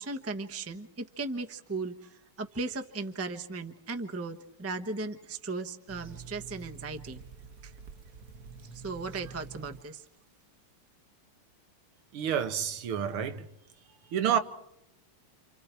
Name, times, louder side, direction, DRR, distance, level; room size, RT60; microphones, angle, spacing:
voice 1, 0.0-7.2 7.6-7.7 8.7-10.0, right 3 dB, 10° right, 0.6 m, -37 dB
sound 1, 5.9-9.8 10.1-10.2, right 5 dB, 50° right, 1.3 m, -47 dB
voice 2, 12.1-13.5 14.1-14.4, right 8 dB, 85° right, 2.1 m, -29 dB
29.5 x 28.5 x 4.5 m
omnidirectional pair, 2.3 m